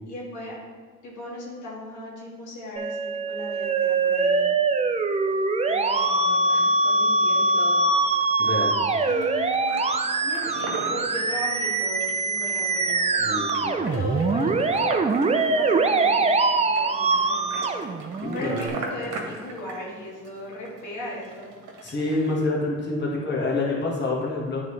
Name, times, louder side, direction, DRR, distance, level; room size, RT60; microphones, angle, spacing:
voice 1, 0.1-0.6 1.0-4.5 5.6-8.2 9.1-13.3 13.8-15.3 15.5-18.0 18.3-21.5, left 1 dB, 85° left, -4 dB, 1.8 m, -37 dB
Musical instrument, 2.8-18.7, right 3 dB, 20° right, 0.4 m, -23 dB
sound 1, 5.9-22.4, right 3 dB, 80° right, 1.1 m, -41 dB
voice 2, 8.4-8.7 13.2-13.9 18.2-18.6 21.8-24.6, left 2 dB, 35° left, -4 dB, 1.5 m, -27 dB
9.3 x 3.9 x 3.2 m, 1.5 s
cardioid pair, 90°, 30 cm